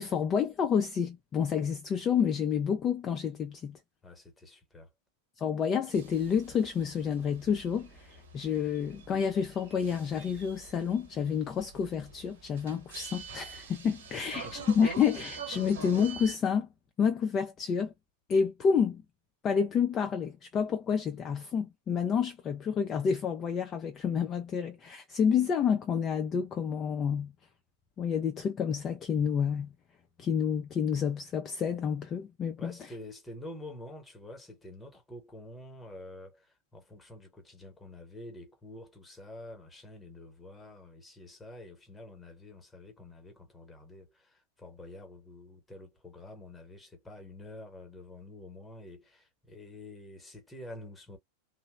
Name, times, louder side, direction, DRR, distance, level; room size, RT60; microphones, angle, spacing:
voice 1, 0.0-3.8 5.4-16.7 17.0-17.9 18.3-19.0 19.4-27.3 28.0-29.7 30.2-32.7, left 7 dB, 25° left, 0.4 m, -29 dB
voice 2, 4.0-4.9 14.2-14.7 32.6-51.2, left 1 dB, 10° left, 0.9 m, -48 dB
sound 1, 5.9-16.3, right 5 dB, 60° right, 1.0 m, -46 dB
2.9 x 2.0 x 2.2 m
figure-of-eight pair, 90°, 0 cm